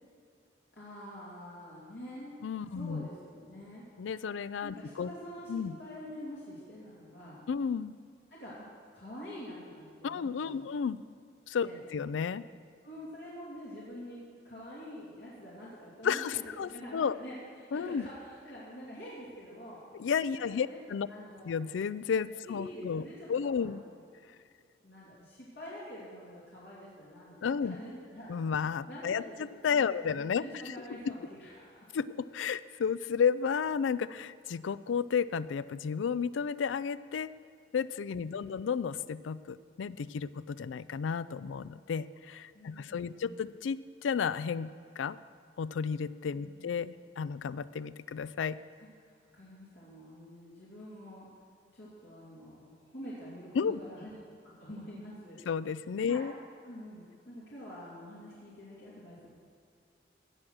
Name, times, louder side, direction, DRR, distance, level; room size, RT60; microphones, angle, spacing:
voice 1, 0.7-3.8 4.6-7.4 8.3-8.7 8.9-10.7 11.6-11.8 12.8-16.4 16.7-17.4 17.7-19.8 20.3-20.8 21.1-21.6 22.4-23.9 24.8-29.3 29.7-32.0 38.2-38.9 42.5-43.4 46.3-46.7 48.8-48.9 49.3-51.3 51.7-54.2 54.4-55.4 56.0-56.3 56.7-59.3, equal, 70° left, -8 dB, 2.5 m, -47 dB
voice 2, 2.4-3.1 4.0-5.1 5.5-5.7 7.5-7.9 10.0-11.0 11.5-12.5 16.0-17.2 17.7-18.0 20.0-21.1 21.4-23.0 23.3-23.8 27.4-27.8 28.3-29.2 29.6-30.7 31.9-37.3 37.7-45.2 45.6-48.6 53.5-53.8 55.5-56.3, left 6 dB, 90° left, 17 dB, 0.4 m, -32 dB
17.0 x 6.4 x 6.1 m, 2.3 s
head